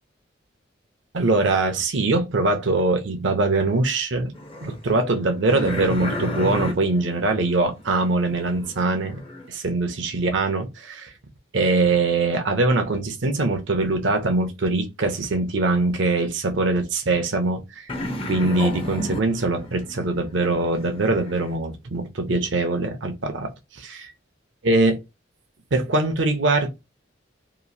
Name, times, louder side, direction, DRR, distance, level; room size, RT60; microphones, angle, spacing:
voice 1, 1.1-4.3 4.6-9.2 9.5-11.1 11.5-17.9 18.3-24.1 24.6-25.0 25.7-26.7, right 2 dB, 65° right, 0.6 m, -22 dB
sound 1, 4.4-9.5 17.9-21.6, left 1 dB, 30° left, 0.5 m, -33 dB
2.9 x 2.4 x 2.6 m
head